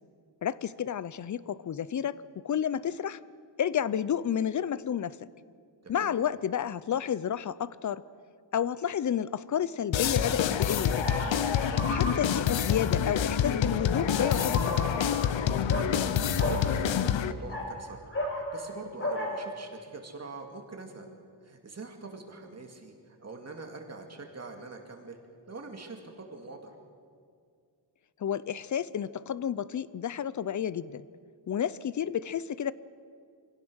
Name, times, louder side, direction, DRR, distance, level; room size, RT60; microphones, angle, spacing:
voice 1, 0.4-2.2 2.4-3.2 3.6-5.2 5.9-8.0 8.5-11.1 11.9-15.1 28.2-31.1 31.5-32.7, left 9 dB, 45° left, 18 dB, 0.5 m, -31 dB
voice 2, 5.8-6.2 11.8-12.1 16.2-18.0 18.3-21.1 21.4-25.2 25.5-26.8, right 3 dB, 35° right, 3 dB, 2.3 m, -44 dB
sound 1, 9.9-17.3, left 8 dB, 85° left, 0.9 m, -27 dB
sound 2, 10.8-12.4 13.9-15.3 15.7-15.9 16.4-16.6 17.3-18.7 19.0-19.3, left 1 dB, 30° left, 4.7 m, -34 dB
25.0 x 16.5 x 6.3 m, 2.2 s
wide cardioid pair, 165°, 44 cm